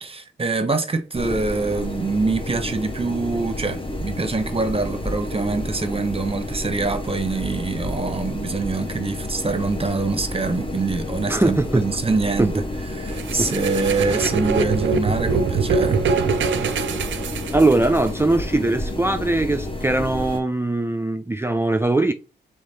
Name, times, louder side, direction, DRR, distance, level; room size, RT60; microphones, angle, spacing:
voice 1, 0.0-12.6 12.9-16.0, right 3 dB, 25° right, 0.9 m, -25 dB
sound 1, 1.1-20.4, left 1 dB, 25° left, 0.9 m, -30 dB
voice 2, 11.3-11.8 13.4-13.5 17.5-22.1, right 2 dB, 10° right, 0.4 m, -21 dB
sound 2, 13.2-18.1, right 5 dB, 65° right, 0.5 m, -23 dB
3.6 x 3.2 x 4.1 m
supercardioid pair, 50°, 21 cm